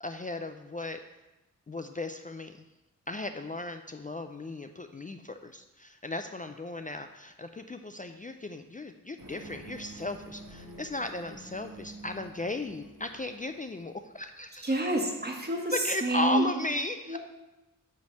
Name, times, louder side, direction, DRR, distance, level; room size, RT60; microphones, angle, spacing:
voice 1, 0.0-1.0 1.7-2.6 3.1-14.8 15.7-17.2, left 2 dB, 25° left, 7 dB, 0.4 m, -36 dB
sound 1, 9.2-14.3, right 2 dB, 70° right, 1.4 m, -48 dB
voice 2, 14.6-16.5 17.1-17.2, right 1 dB, 30° right, 1 dB, 1.4 m, -28 dB
8.1 x 3.3 x 6.3 m, 1.0 s
wide cardioid pair, 65°, 33 cm